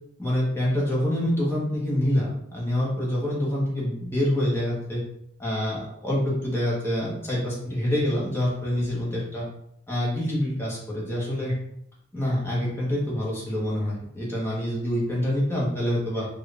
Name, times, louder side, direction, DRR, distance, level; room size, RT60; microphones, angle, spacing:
voice 1, 0.2-5.0 5.4-9.5 9.9-11.5 12.1-16.3, left 1 dB, 10° left, -6 dB, 1.0 m, -26 dB
4.4 x 2.4 x 3.3 m, 0.75 s
head